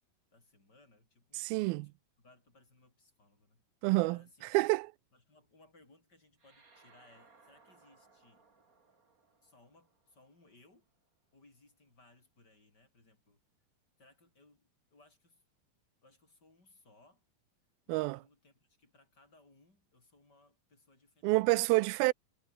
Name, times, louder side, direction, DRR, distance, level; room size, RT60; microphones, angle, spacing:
voice 1, 0.3-1.5 1.8-1.9 2.2-3.6 4.0-4.5 5.1-8.5 9.4-10.9 11.3-13.4 14.0-15.4 16.0-17.2 17.9-21.4, left 2 dB, 25° left, 5.9 m, -64 dB
voice 2, 1.3-1.9 3.8-4.2 4.5-4.9 17.9-18.2 21.2-22.1, right 23 dB, 90° right, 2.4 m, -28 dB
sound 1, 6.4-11.1, right 4 dB, 25° right, 2.8 m, -66 dB
omnidirectional pair, 4.2 m